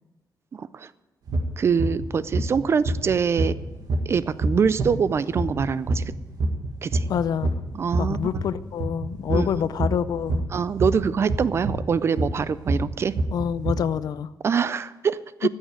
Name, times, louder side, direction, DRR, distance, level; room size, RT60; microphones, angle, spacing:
voice 1, 0.5-0.9 1.6-3.5 4.1-6.0 6.8-7.0 7.7-8.2 9.3-9.5 10.5-13.1 14.4-15.5, right 6 dB, 35° right, 16 dB, 0.4 m, -24 dB
Irregular Heartbeat, 1.3-1.4 1.8-2.1 2.3-8.6 8.8-13.7, right 2 dB, 60° right, 1.6 m, -25 dB
voice 2, 7.1-7.5 8.0-10.4 13.3-14.3 15.4-15.5, left 8 dB, 60° left, 16 dB, 0.5 m, -26 dB
14.0 x 6.4 x 9.2 m, 1.1 s
wide cardioid pair, 175°, 7 cm